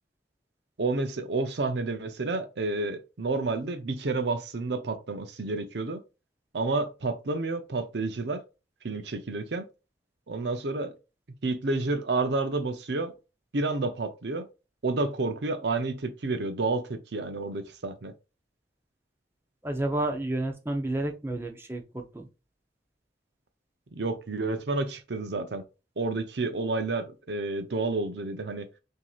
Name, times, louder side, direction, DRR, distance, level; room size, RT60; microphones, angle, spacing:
voice 1, 0.8-6.0 6.5-8.4 8.8-9.7 10.3-10.9 11.4-13.1 13.5-14.5 14.8-18.1 24.0-25.6 26.0-28.7, right 3 dB, 70° right, 0.6 m, -30 dB
voice 2, 19.6-22.3, right 1 dB, 15° right, 0.6 m, -30 dB
5.9 x 2.8 x 2.4 m
head